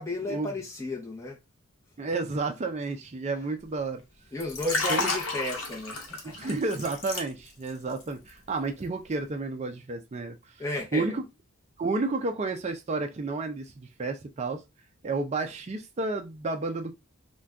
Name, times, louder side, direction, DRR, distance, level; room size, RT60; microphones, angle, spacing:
voice 1, 0.0-1.4 3.3-3.5 4.3-6.5 10.6-11.2, left 2 dB, 15° left, 0.7 m, -34 dB
voice 2, 2.0-4.0 4.9-5.0 6.3-10.4 10.9-11.1 11.8-14.6 15.0-17.0, right 3 dB, 30° right, 0.4 m, -31 dB
Liquid, 4.4-7.7 8.0-8.3, left 3 dB, 85° left, 0.9 m, -31 dB
2.5 x 2.2 x 3.4 m
head